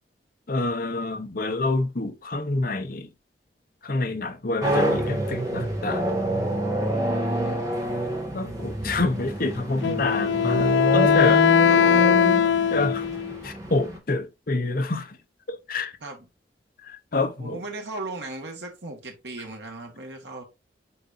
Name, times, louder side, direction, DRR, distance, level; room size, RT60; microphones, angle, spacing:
voice 1, 0.5-3.1 3.8-6.1 8.3-11.5 12.7-13.1 13.4-15.2 15.5-16.0 16.8-17.6, left 3 dB, 55° left, 1.0 m, -27 dB
sound 1, 4.6-14.0, right 1 dB, 20° right, 2.2 m, -27 dB
voice 2, 6.9-7.6 11.7-12.1 16.0-16.3 17.4-20.4, right 2 dB, 70° right, 2.0 m, -36 dB
Wind instrument woodwind instrument, 9.8-13.4, left 8 dB, 75° left, 0.3 m, -20 dB
8.4 x 4.1 x 2.8 m
head